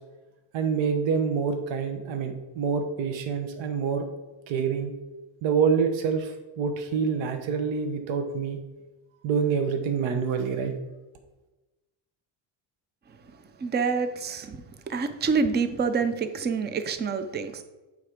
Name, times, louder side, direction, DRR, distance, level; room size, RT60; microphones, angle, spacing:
voice 1, 0.5-4.1 4.5-4.9 5.4-8.6 9.2-10.8, right 6 dB, 65° right, 6 dB, 1.0 m, -26 dB
voice 2, 13.6-14.6 14.9-17.6, right 5 dB, 20° right, 10 dB, 0.5 m, -27 dB
7.9 x 3.5 x 5.0 m, 1.1 s
cardioid pair, 120°, 49 cm